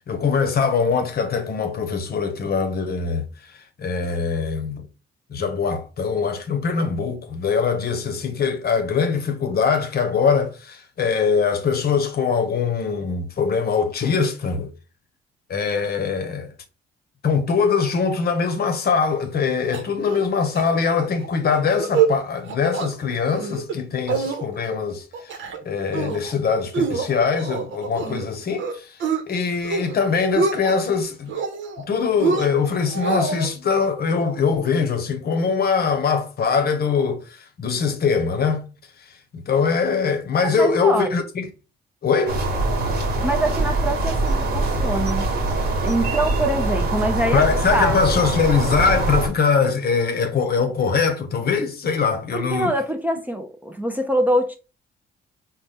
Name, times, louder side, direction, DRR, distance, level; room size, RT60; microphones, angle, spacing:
voice 1, 0.1-3.3 3.8-4.9 5.3-14.7 15.5-16.5 17.2-29.0 29.3-31.3 31.8-38.7 39.3-41.5 42.0-42.4 47.3-52.7, left 5 dB, 50° left, 0.8 m, -22 dB
sound 1, 19.7-20.3 20.6-20.7 21.0-21.3 21.7-22.1 22.5-22.9 23.3-23.8 24.1-24.8 25.1-25.6 25.9-26.3 26.7-28.3 28.6-29.2 29.6-30.0 30.2-30.9 31.3-31.8 32.2-33.5, right 6 dB, 70° right, 0.8 m, -25 dB
voice 2, 40.6-41.1 43.2-45.3 45.8-47.4 47.7-48.0 52.3-54.6, right 1 dB, 10° right, 0.5 m, -24 dB
sound 2, 42.3-49.3, right 2 dB, 55° right, 1.2 m, -23 dB
4.1 x 2.1 x 3.3 m
cardioid pair, 90°, 20 cm